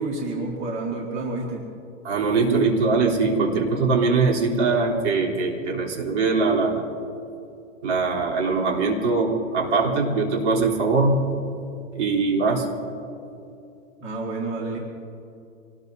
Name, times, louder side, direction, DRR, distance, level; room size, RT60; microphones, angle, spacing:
voice 1, 0.0-1.7 14.0-14.8, right 2 dB, 30° right, -1 dB, 1.9 m, -29 dB
voice 2, 2.0-6.8 7.8-11.2 11.9-12.7, right 4 dB, 60° right, -1 dB, 3.7 m, -22 dB
26.0 x 19.0 x 2.8 m, 2.7 s
hypercardioid pair, 150°, 39 cm